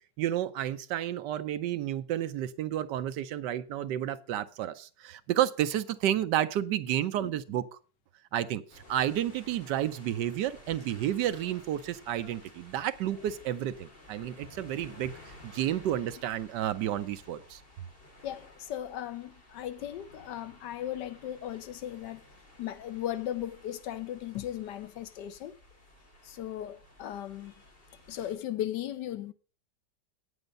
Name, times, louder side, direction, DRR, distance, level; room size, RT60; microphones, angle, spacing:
voice 1, 0.2-7.8 8.3-15.1 15.4-17.6, right 11 dB, 75° right, 1.3 m, -31 dB
sound 1, 8.7-28.3, left 1 dB, 30° left, 2.7 m, -54 dB
voice 2, 18.2-22.2 22.6-25.6 26.2-27.5 28.1-29.3, left 11 dB, 75° left, 1.3 m, -37 dB
8.8 x 8.0 x 5.2 m
omnidirectional pair, 1.9 m